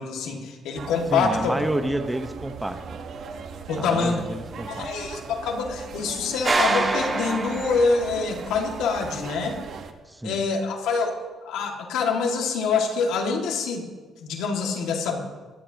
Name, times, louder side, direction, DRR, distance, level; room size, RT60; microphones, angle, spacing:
voice 1, 0.0-1.6 3.7-4.2 4.7-9.6 10.2-11.2 11.4-13.8 14.2-15.2, left 4 dB, 90° left, 2 dB, 2.1 m, -25 dB
sound 1, 0.8-9.9, right 6 dB, 70° right, 1.2 m, -38 dB
voice 2, 1.1-3.0 3.8-4.9 10.1-10.4, right 1 dB, 10° right, 8 dB, 1.0 m, -29 dB
sound 2, 6.4-8.4, right 3 dB, 30° right, 1.9 m, -25 dB
23.0 x 11.0 x 2.9 m, 1.3 s
cardioid pair, 90°, 0 cm